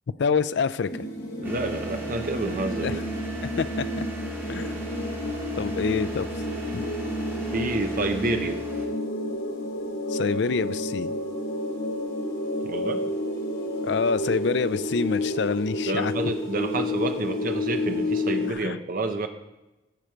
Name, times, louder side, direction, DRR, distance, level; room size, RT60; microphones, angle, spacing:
voice 1, 0.2-1.1 2.8-3.0 3.4-4.1 4.5-4.8 5.6-6.3 6.7-6.8 10.1-11.1 13.8-16.1 18.6-18.8, left 5 dB, 65° left, 14 dB, 0.4 m, -26 dB
sound 1, 0.9-18.5, left 1 dB, 85° left, 3.2 m, -30 dB
sound 2, 1.4-8.9, right 1 dB, 15° right, 1.8 m, -38 dB
voice 2, 1.4-3.1 7.4-8.6 12.6-13.1 15.9-19.3, right 2 dB, 45° right, 6 dB, 0.7 m, -29 dB
15.0 x 5.1 x 4.5 m, 1.0 s
head